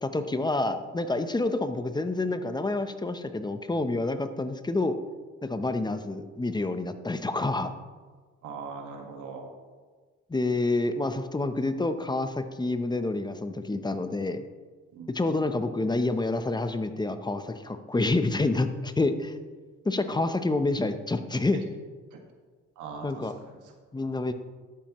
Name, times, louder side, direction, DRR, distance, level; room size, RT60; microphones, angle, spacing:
voice 1, 0.0-5.0 5.4-7.7 10.3-14.4 15.1-19.3 19.8-21.6 23.0-23.3 23.9-24.3, left 2 dB, 15° left, 9 dB, 0.7 m, -28 dB
voice 2, 8.4-9.5 14.9-15.1 19.9-20.2 22.8-23.3 24.0-24.1, right 5 dB, 85° right, 2 dB, 1.7 m, -40 dB
12.0 x 9.3 x 3.1 m, 1.4 s
cardioid pair, 90°, 30 cm